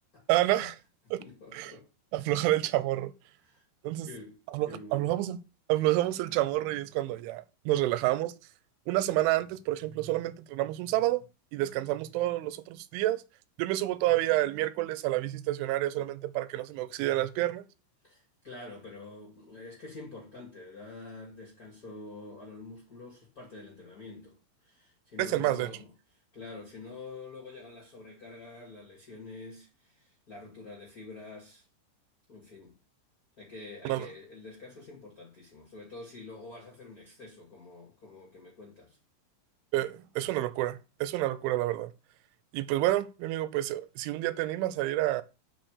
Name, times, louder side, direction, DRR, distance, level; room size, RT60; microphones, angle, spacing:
voice 1, 0.3-0.8 1.1-1.2 1.5-1.7 2.1-3.1 3.8-4.1 4.5-5.4 5.7-8.3 8.9-11.2 11.5-13.2 13.6-17.6 25.2-25.7 33.9-34.1 39.7-41.9 42.5-45.2, right 15 dB, 80° right, 3.0 m, -29 dB
voice 2, 1.0-1.9 2.2-2.4 3.4-3.6 4.0-5.1 18.0-25.9 26.3-31.7 32.3-32.8 33.4-39.0, left 3 dB, 30° left, 1.8 m, -47 dB
6.3 x 6.0 x 6.6 m
omnidirectional pair, 5.8 m